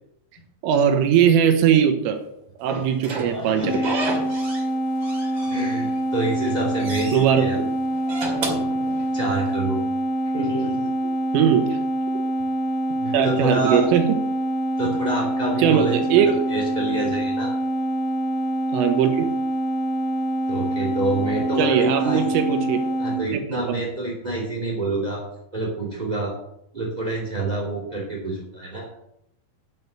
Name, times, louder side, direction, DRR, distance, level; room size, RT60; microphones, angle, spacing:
voice 1, 0.6-2.2 2.6-3.9 7.1-7.7 11.3-11.8 13.1-14.0 15.6-16.4 18.7-19.3 21.6-22.8 23.3-23.8, right 8 dB, 80° right, 6 dB, 3.6 m, -20 dB
Slam / Squeak, 2.7-4.7 5.0-6.0 6.4-7.3 7.9-9.5, right 2 dB, 40° right, 1.8 m, -31 dB
voice 2, 3.0-4.1 5.5-7.6 9.1-9.8 10.3-11.1 13.0-13.9 14.8-17.5 20.5-22.3 23.0-25.2 25.5-26.3 26.7-28.9, right 2 dB, 10° right, -2 dB, 2.4 m, -28 dB
sound 1, 3.6-23.2, right 1 dB, 75° left, 4.4 m, -25 dB
10.5 x 6.4 x 6.8 m, 0.77 s
omnidirectional pair, 5.9 m